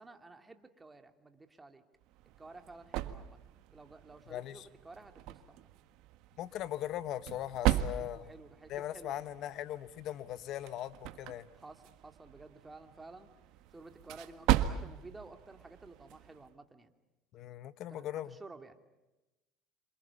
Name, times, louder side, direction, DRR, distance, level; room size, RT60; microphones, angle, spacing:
voice 1, 0.0-1.8 2.4-3.4 3.7-5.7 7.6-9.3 11.5-13.3 13.7-16.9 17.9-18.8, right 3 dB, 15° right, 7 dB, 2.7 m, -53 dB
sound 1, 2.0-16.5, right 13 dB, 65° right, 1.6 m, -38 dB
voice 2, 4.3-4.7 6.4-8.3 8.7-11.5 17.3-18.4, left 12 dB, 55° left, 14 dB, 1.4 m, -39 dB
28.0 x 26.5 x 7.2 m, 1.0 s
supercardioid pair, 115°, 0 cm